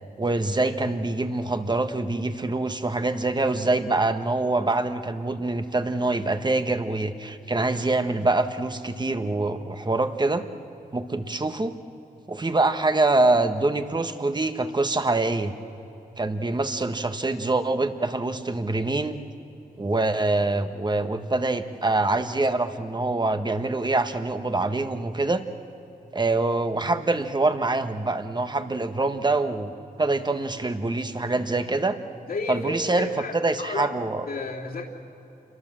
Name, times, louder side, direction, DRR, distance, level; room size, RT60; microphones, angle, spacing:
voice 1, 0.2-10.4 10.9-11.7 12.3-15.5 16.2-19.2 19.8-25.4 26.1-29.7 30.0-32.0 32.5-33.1 33.4-34.2, right 2 dB, 30° right, 8 dB, 1.4 m, -25 dB
voice 2, 32.3-34.0 34.3-34.9, left 3 dB, 70° left, -2 dB, 3.3 m, -32 dB
28.0 x 22.5 x 7.6 m, 3.0 s
cardioid pair, 70°, 16 cm